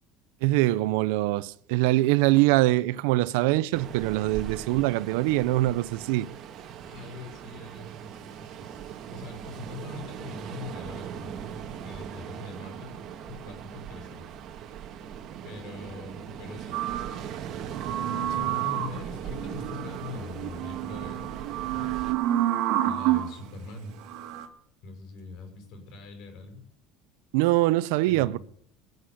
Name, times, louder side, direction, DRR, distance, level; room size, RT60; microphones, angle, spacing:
voice 1, 0.4-6.3 27.3-28.4, right 18 dB, 80° right, 0.6 m, -23 dB
Ocean, 3.7-22.1, right 8 dB, 45° right, 1.6 m, -39 dB
voice 2, 6.8-14.3 15.4-16.8 18.0-21.4 21.7-22.0 22.8-24.0 24.8-26.6 28.1-28.4, left 3 dB, 55° left, 5.9 m, -43 dB
sound 1, 16.7-23.3 24.0-24.5, right 13 dB, 60° right, 2.3 m, -29 dB
19.0 x 8.0 x 8.2 m
cardioid pair, 140°, 0 cm